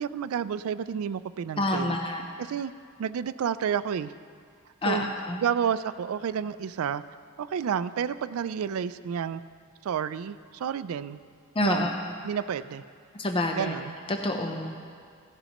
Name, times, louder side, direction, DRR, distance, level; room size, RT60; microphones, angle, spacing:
voice 1, 0.0-2.0 2.4-2.7 3.0-4.1 4.8-5.1 5.4-7.0 7.4-9.4 9.8-11.2 11.6-11.9 12.2-12.8 13.6-13.9, right 8 dB, 75° right, 14 dB, 0.3 m, -30 dB
voice 2, 1.6-2.2 4.8-5.4 11.6-11.9 13.2-13.7 14.1-14.7, left 1 dB, 25° left, 3 dB, 0.7 m, -27 dB
16.0 x 11.0 x 3.0 m, 2.2 s
head